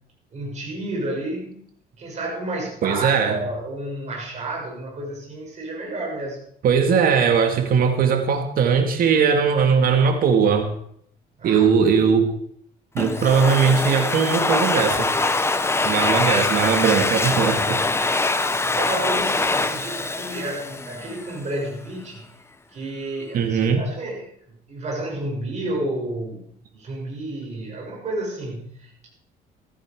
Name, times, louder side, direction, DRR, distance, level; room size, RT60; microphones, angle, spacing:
voice 1, 0.3-1.6 2.0-6.4 11.4-11.7 18.5-22.3 22.7-24.2 24.7-29.1, right 2 dB, 40° right, -1 dB, 6.5 m, -31 dB
voice 2, 2.8-3.4 6.6-10.7 11.4-12.3 12.9-15.1 15.8-17.8 23.3-23.8, right 6 dB, 60° right, 6 dB, 2.0 m, -19 dB
Domestic sounds home sounds, 13.0-21.4, left 3 dB, 15° left, 1.1 m, -23 dB
14.5 x 14.0 x 4.7 m, 0.65 s
cardioid pair, 110°, 17 cm